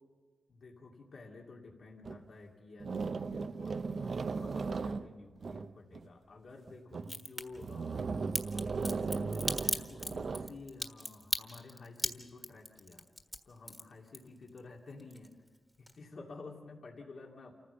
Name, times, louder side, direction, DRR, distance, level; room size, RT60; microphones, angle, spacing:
voice 1, 0.5-8.2 8.8-13.1 13.5-15.4 15.8-17.5, left 3 dB, 70° left, -1 dB, 2.6 m, -51 dB
sound 1, 2.0-2.2 2.8-6.1 6.7-7.2 7.6-10.6, right 4 dB, 60° right, 0.7 m, -37 dB
Crack, 7.0-7.4 8.3-14.6 14.9-15.6 15.9-16.0, equal, ahead, 1.6 m, -36 dB
28.5 x 15.0 x 7.0 m, 1.4 s
wide cardioid pair, 115°, 0 cm